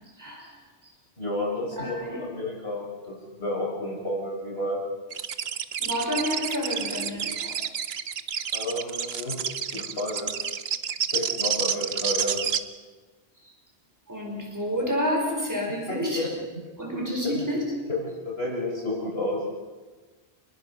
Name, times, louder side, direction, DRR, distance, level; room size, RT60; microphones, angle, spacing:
voice 1, 0.2-0.5 1.8-2.2 5.8-7.6 14.1-16.3 16.8-17.6, equal, 15° right, -1 dB, 5.3 m, -29 dB
voice 2, 1.2-4.8 8.5-9.4 9.7-10.3 11.1-12.4 15.9-16.3 17.2-17.4 17.9-19.4, left 1 dB, 70° left, -4 dB, 5.8 m, -31 dB
sound 1, 5.1-12.6, right 7 dB, 75° right, 1.1 m, -29 dB
28.5 x 21.0 x 5.7 m, 1.3 s
omnidirectional pair, 1.1 m